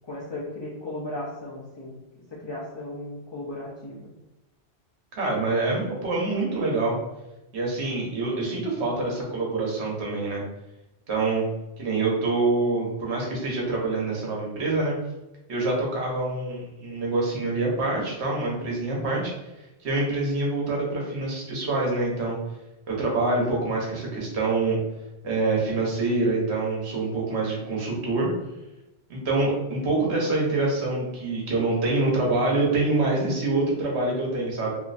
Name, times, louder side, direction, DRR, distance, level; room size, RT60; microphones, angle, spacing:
voice 1, 0.1-1.9 2.3-4.1, left 1 dB, 35° left, -7 dB, 0.4 m, -36 dB
voice 2, 5.2-7.0 7.5-10.4 11.1-11.5 11.8-14.9 15.5-19.3 19.8-22.4 22.9-24.8 25.2-28.3 29.1-34.7, right 2 dB, 65° right, -2 dB, 1.2 m, -25 dB
3.0 x 2.9 x 2.5 m, 0.96 s
omnidirectional pair, 1.2 m